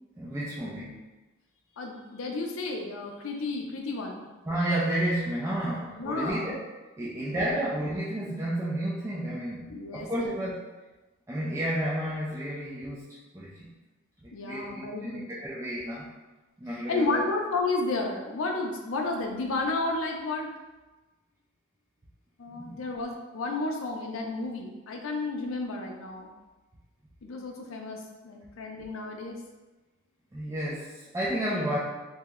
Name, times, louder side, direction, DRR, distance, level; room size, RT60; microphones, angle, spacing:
voice 1, 0.2-1.0 4.5-6.6 7.0-10.6 11.3-13.7 14.2-16.1 16.6-17.2 22.5-22.8 30.3-31.8, right 1 dB, 15° right, -7 dB, 0.3 m, -31 dB
voice 2, 1.8-4.2 6.0-6.5 7.0-7.6 9.7-10.3 14.3-15.3 16.9-20.5 22.4-26.3 27.2-29.4, left 3 dB, 70° left, 1 dB, 0.4 m, -32 dB
2.7 x 2.1 x 3.5 m, 1.1 s
head